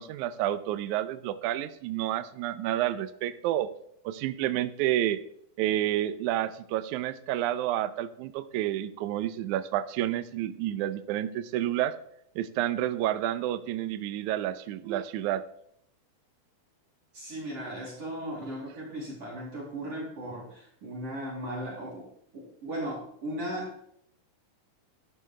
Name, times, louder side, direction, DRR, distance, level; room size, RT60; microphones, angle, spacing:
voice 1, 0.0-3.7 4.0-5.2 5.6-12.0 12.4-15.4, right 13 dB, 85° right, 12 dB, 1.7 m, -29 dB
voice 2, 17.1-22.1 22.3-23.7, right 1 dB, 45° right, -5 dB, 3.8 m, -37 dB
12.0 x 11.5 x 3.2 m, 0.69 s
omnidirectional pair, 4.3 m